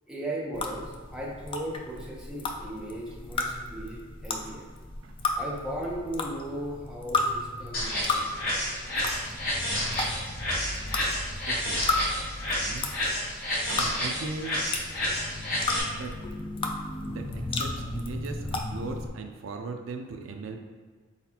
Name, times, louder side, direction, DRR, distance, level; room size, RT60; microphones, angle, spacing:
voice 1, 0.1-4.7 5.4-8.5, right 1 dB, 5° right, -5 dB, 0.7 m, -37 dB
sound 1, 0.5-19.1, left 2 dB, 25° left, 0.3 m, -34 dB
sound 2, 7.7-15.8, equal, 45° left, 1.3 m, -30 dB
voice 2, 11.5-11.9 12.4-12.9 13.5-14.7 15.9-16.2 17.1-20.6, right 3 dB, 70° right, 4 dB, 0.4 m, -39 dB
4.1 x 4.1 x 2.8 m, 1.5 s
head